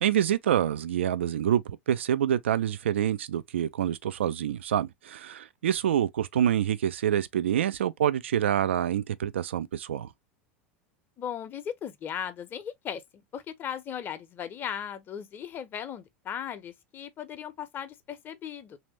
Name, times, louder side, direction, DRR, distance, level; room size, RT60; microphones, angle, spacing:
voice 1, 0.0-10.1, right 10 dB, 70° right, 0.4 m, -27 dB
voice 2, 11.2-18.8, left 8 dB, 30° left, 0.7 m, -37 dB
3.3 x 2.7 x 3.1 m
figure-of-eight pair, 85°, 7 cm